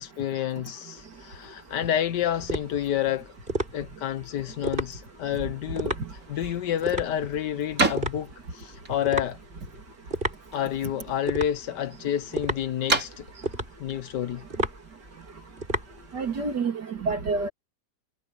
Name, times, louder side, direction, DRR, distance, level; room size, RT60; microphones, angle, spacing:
voice 1, 0.0-3.3 3.7-6.0 6.3-9.4 10.5-13.3 13.8-14.4, left 10 dB, 90° left, 1.6 m, -29 dB
sound 1, 1.0-16.6, right 1 dB, 30° right, 8.0 m, -34 dB
sound 2, 6.1-15.3, right 3 dB, 55° right, 4.4 m, -35 dB
voice 2, 16.1-17.5, right 4 dB, 85° right, 3.4 m, -28 dB
omnidirectional pair, 1.8 m